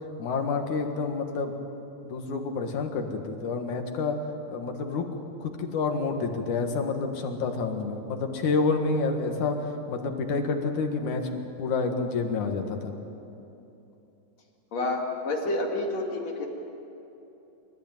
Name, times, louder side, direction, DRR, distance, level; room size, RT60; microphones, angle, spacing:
voice 1, 0.2-1.5 2.0-4.2 4.5-9.6 9.9-12.9, left 4 dB, 85° left, 4 dB, 3.2 m, -29 dB
voice 2, 14.7-16.5, left 2 dB, 60° left, 0 dB, 3.6 m, -29 dB
27.0 x 14.0 x 9.2 m, 2.9 s
omnidirectional pair, 3.3 m